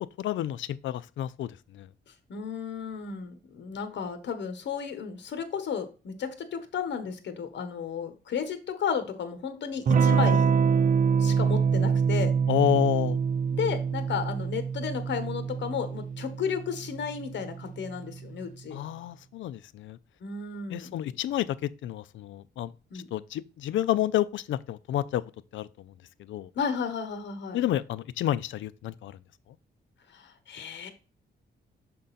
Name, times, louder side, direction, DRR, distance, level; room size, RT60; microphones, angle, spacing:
voice 1, 0.2-1.9 12.5-13.2 18.7-20.0 20.7-22.7 23.1-25.2 25.5-25.9 26.3-26.5 27.5-29.2, left 12 dB, 85° left, 0.4 m, -29 dB
voice 2, 2.3-10.5 11.2-12.3 13.5-18.8 20.2-21.0 22.9-23.1 26.5-27.6 30.1-30.9, left 7 dB, 70° left, 1.2 m, -33 dB
Electric guitar / Strum, 9.9-18.2, right 6 dB, 45° right, 0.5 m, -25 dB
6.7 x 3.8 x 4.1 m
cardioid pair, 115°, 19 cm